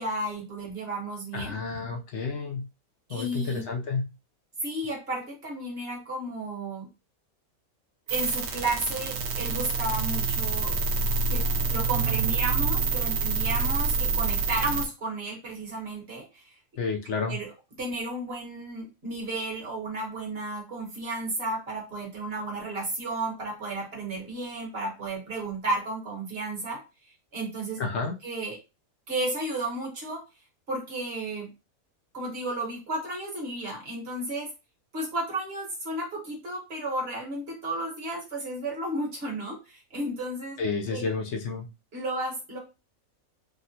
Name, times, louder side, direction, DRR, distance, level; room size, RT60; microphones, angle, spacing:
voice 1, 0.0-1.5 3.1-3.6 4.6-6.9 8.1-10.7 11.3-11.4 11.7-16.5 17.2-17.5 17.8-26.8 27.3-27.8 28.2-28.6 29.1-30.2 30.7-31.5 32.1-34.5 34.9-40.6 40.9-41.1 41.9-42.6, right 2 dB, 45° right, -2 dB, 1.3 m, -33 dB
voice 2, 1.3-2.7 3.1-4.1 16.8-17.4 27.8-28.1 40.6-41.7, left 4 dB, 65° left, 2 dB, 0.8 m, -30 dB
sound 1, 8.1-14.9, right 4 dB, 70° right, 1.0 m, -27 dB
3.5 x 2.1 x 2.7 m, 0.28 s
omnidirectional pair, 1.5 m